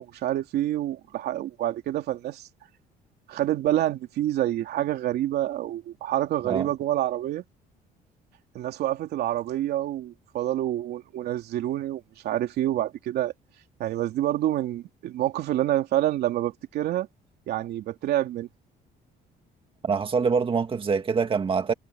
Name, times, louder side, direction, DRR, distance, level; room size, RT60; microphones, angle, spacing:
voice 1, 0.0-2.5 3.3-7.4 8.5-13.3 13.8-17.1 17.5-18.5, right 13 dB, 70° right, 3.1 m, -27 dB
voice 2, 19.8-21.7, right 5 dB, 30° right, 1.9 m, -24 dB
cardioid pair, 110°, 17 cm